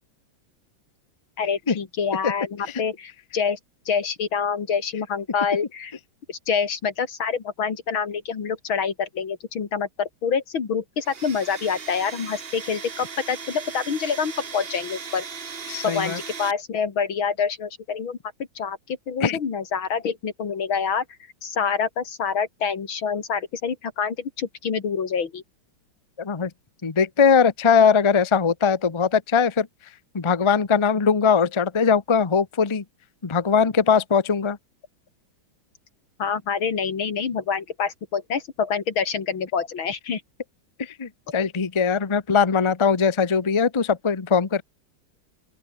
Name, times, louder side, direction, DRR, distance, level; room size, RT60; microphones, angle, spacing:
voice 1, 1.4-3.6 3.9-5.9 6.3-15.2 15.8-18.2 18.6-21.0 21.4-25.4 36.2-40.2, left 6 dB, 75° left, 3.2 m, -26 dB
Domestic sounds home sounds, 11.0-16.5, right 6 dB, 35° right, 1.2 m, -37 dB
voice 2, 15.7-16.2 19.2-19.4 26.2-26.5 26.8-29.7 30.1-32.8 33.2-34.6 40.8-44.6, left 6 dB, 20° left, 0.7 m, -20 dB
open air
omnidirectional pair, 2.2 m